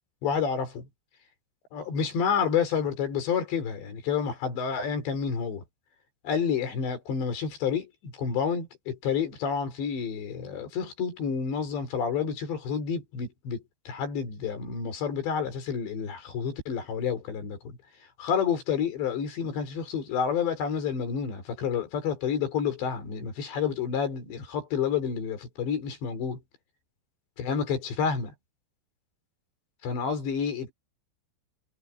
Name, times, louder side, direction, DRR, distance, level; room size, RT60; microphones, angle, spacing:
voice 1, 0.2-0.9 1.7-5.6 6.2-17.8 18.2-26.4 27.4-28.3 29.8-30.7, left 7 dB, 75° left, 6.6 m, -29 dB
omnidirectional pair, 5.1 m